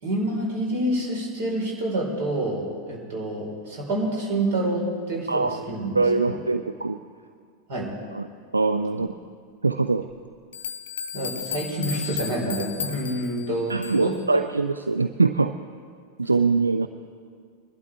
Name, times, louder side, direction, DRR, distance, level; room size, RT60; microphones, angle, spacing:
voice 1, 0.0-6.4 7.7-8.0 11.1-14.4, right 1 dB, 55° right, -2 dB, 4.1 m, -28 dB
voice 2, 5.3-5.6 5.9-7.0 8.1-8.3 8.5-9.1 9.6-10.1 13.7-15.5 16.2-16.9, right 3 dB, 80° right, 9 dB, 0.4 m, -23 dB
sound 1, 10.1-10.2 10.5-14.2, left 7 dB, 60° left, 0.7 m, -34 dB
23.5 x 12.0 x 3.4 m, 2.1 s
figure-of-eight pair, 90°, 0 cm